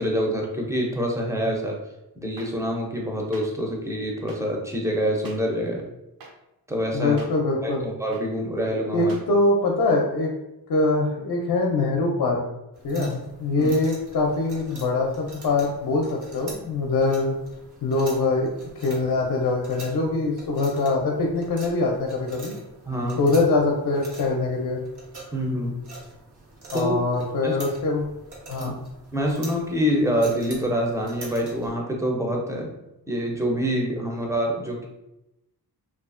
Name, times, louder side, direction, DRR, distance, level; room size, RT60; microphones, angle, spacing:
voice 1, 0.0-1.7 2.2-5.8 6.7-7.2 7.6-9.1 13.0-13.1 13.5-13.7 22.9-23.2 25.3-25.8 26.7-27.0 27.4-27.6 28.6-28.7 29.1-32.7 33.1-34.9, equal, 10° right, -1 dB, 0.4 m, -26 dB
sound 1, 2.4-2.5 3.3-3.4 4.3-4.4 5.2-5.4 6.2-6.3 7.2-7.3 8.1-8.2 9.1-9.2, right 3 dB, 60° right, 0.5 m, -43 dB
voice 2, 6.9-7.8 8.9-10.3 10.7-12.4 12.8-17.3 17.8-18.5 18.8-22.5 23.2-24.8 26.7-28.1 28.5-28.7, left 3 dB, 60° left, 0 dB, 0.5 m, -23 dB
sound 2, 12.7-31.7, right 2 dB, 80° right, 0.9 m, -44 dB
2.7 x 2.3 x 2.4 m, 0.90 s
wide cardioid pair, 115°, 39 cm